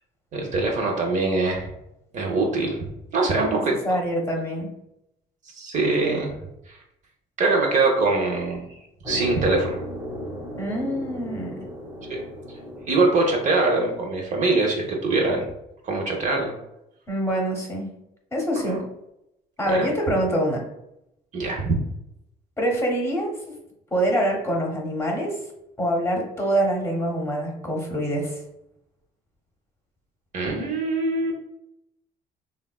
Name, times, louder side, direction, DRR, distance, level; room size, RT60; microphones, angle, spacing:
voice 1, 0.3-1.7 2.1-2.8 3.1-3.8 5.5-6.3 6.7-6.8 7.4-8.7 9.1-9.8 12.1-12.2 12.9-15.5 15.8-16.5 18.7-18.8 19.7-19.9 21.3-21.8 30.3-31.3, right 3 dB, 45° right, 1 dB, 0.6 m, -23 dB
voice 2, 3.3-4.7 10.6-11.6 17.1-17.9 18.3-18.8 19.6-20.6 22.6-23.4 23.9-25.4 25.8-28.4, right 1 dB, 15° left, 0 dB, 0.8 m, -25 dB
sound 1, 9.0-15.3, equal, 15° right, 0.8 m, -37 dB
3.3 x 2.2 x 2.2 m, 0.82 s
cardioid pair, 110°, 17 cm